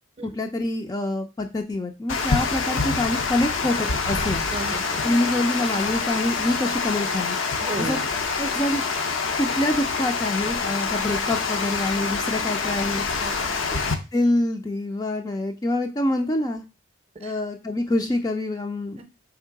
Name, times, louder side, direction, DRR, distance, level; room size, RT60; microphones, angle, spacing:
voice 1, 0.2-4.4 5.0-7.4 7.8-8.0 8.4-8.8 9.4-13.0 13.7-16.6 17.2-19.0, left 1 dB, 20° left, 5 dB, 0.4 m, -26 dB
Water, 2.1-13.9, left 4 dB, 75° left, 0.6 m, -26 dB
voice 2, 4.5-5.0 7.6-8.1 13.1-13.5 17.2-17.4 19.0-19.1, right 2 dB, 30° right, 7 dB, 0.6 m, -34 dB
3.7 x 3.0 x 4.5 m, 0.29 s
head